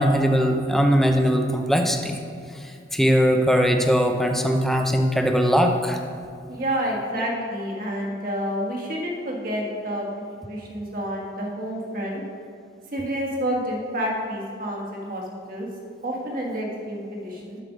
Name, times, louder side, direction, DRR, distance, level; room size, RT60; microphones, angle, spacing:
voice 1, 0.0-2.2 2.9-6.0 7.1-7.2, equal, ahead, 3 dB, 0.5 m, -20 dB
voice 2, 6.5-12.2 12.9-15.7 16.0-17.6, equal, 50° right, -2 dB, 1.5 m, -29 dB
7.6 x 6.7 x 5.2 m, 2.3 s
head